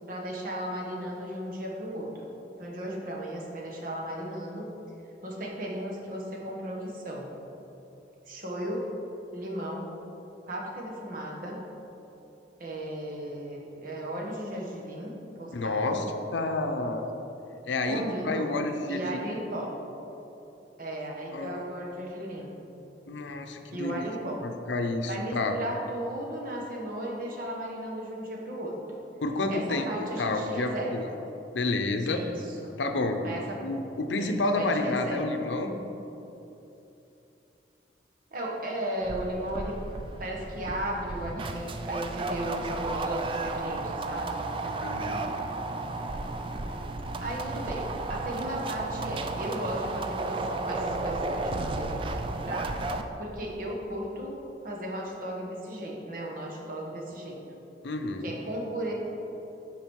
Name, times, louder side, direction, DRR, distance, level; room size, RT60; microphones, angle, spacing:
voice 1, 0.1-2.3 2.6-4.7 5.2-7.3 8.3-8.8 9.3-9.9 10.5-11.6 12.6-16.1 17.8-18.5 18.9-19.7 20.8-22.5 23.7-24.4 25.1-28.7 29.5-31.0 32.1-32.8 33.2-33.6 34.2-35.2 38.3-39.8 40.2-44.5 47.2-52.7 53.2-54.4 54.6-57.4 58.2-58.9, right 1 dB, 50° right, -2 dB, 1.3 m, -35 dB
voice 2, 15.5-16.0 16.3-17.1 17.6-19.3 21.3-21.7 23.1-24.0 24.4-25.6 29.2-31.0 31.5-32.2 32.8-33.2 33.6-35.7 44.7-45.3 57.8-58.3, left 2 dB, 85° left, 6 dB, 0.6 m, -30 dB
sound 1, 39.0-53.0, right 2 dB, 30° right, 0.3 m, -33 dB
8.9 x 4.9 x 4.6 m, 3.0 s
head